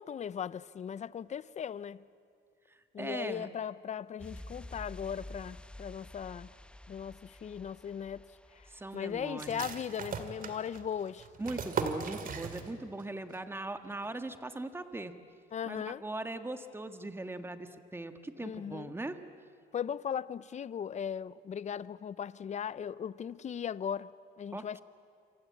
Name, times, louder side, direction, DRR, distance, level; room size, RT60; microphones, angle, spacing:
voice 1, 0.0-2.0 2.9-6.5 6.9-8.3 8.5-8.7 8.9-11.3 15.5-16.0 18.4-18.9 19.7-24.1 24.4-24.8, left 8 dB, 40° left, 0.7 m, -38 dB
voice 2, 2.7-3.5 8.7-9.7 11.4-15.1 15.6-19.2 24.5-24.8, right 2 dB, 10° right, 1.6 m, -40 dB
sound 1, 4.2-10.7 11.0-11.1, left 1 dB, 5° left, 0.9 m, -50 dB
sound 2, 9.4-13.0 13.3-13.4 13.8-14.3, right 6 dB, 45° right, 2.4 m, -39 dB
27.5 x 25.5 x 8.6 m
cardioid pair, 110°, 19 cm